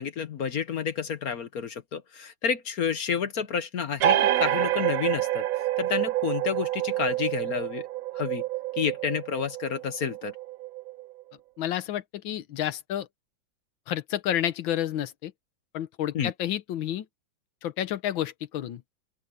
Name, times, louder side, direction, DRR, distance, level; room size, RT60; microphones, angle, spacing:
voice 1, 0.0-5.5 5.8-7.9 8.1-8.4 8.8-10.3 16.1-16.3, left 7 dB, 55° left, 1.4 m, -30 dB
sound 1, 4.0-11.2, right 13 dB, 70° right, 0.9 m, -28 dB
voice 2, 11.6-13.1 13.9-15.3 15.7-17.1 17.6-18.8, left 11 dB, 90° left, 1.7 m, -30 dB
open air
omnidirectional pair, 2.1 m